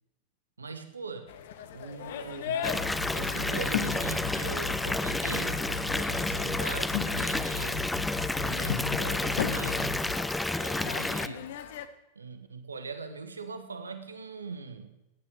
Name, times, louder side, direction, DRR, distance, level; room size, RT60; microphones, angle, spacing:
voice 1, 0.6-1.3 1.7-2.8 3.1-7.9 8.4-10.1 10.6-11.5 12.2-14.9, right 4 dB, 75° right, 10 dB, 1.0 m, -41 dB
sound 1, 1.3-11.9, left 10 dB, 55° left, 0.9 m, -38 dB
sound 2, 2.6-10.2, left 6 dB, 70° left, 5.8 m, -39 dB
Water tap faucet / Bathtub (filling or washing) / Fill (with liquid), 2.6-11.3, left 2 dB, 5° left, 0.4 m, -30 dB
15.0 x 9.9 x 4.8 m, 0.96 s
figure-of-eight pair, 90°, 0 cm